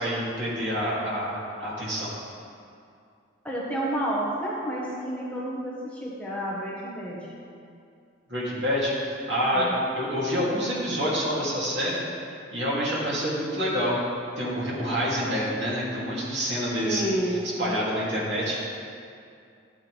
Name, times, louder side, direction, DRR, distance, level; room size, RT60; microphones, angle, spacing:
voice 1, 0.0-2.1 8.3-12.0 12.5-14.0 14.4-17.1 17.6-18.6, equal, 65° right, -7 dB, 2.8 m, -27 dB
voice 2, 3.4-7.3 9.5-9.8 16.8-17.7, right 1 dB, 5° left, -6 dB, 1.3 m, -30 dB
13.0 x 8.6 x 3.4 m, 2.4 s
head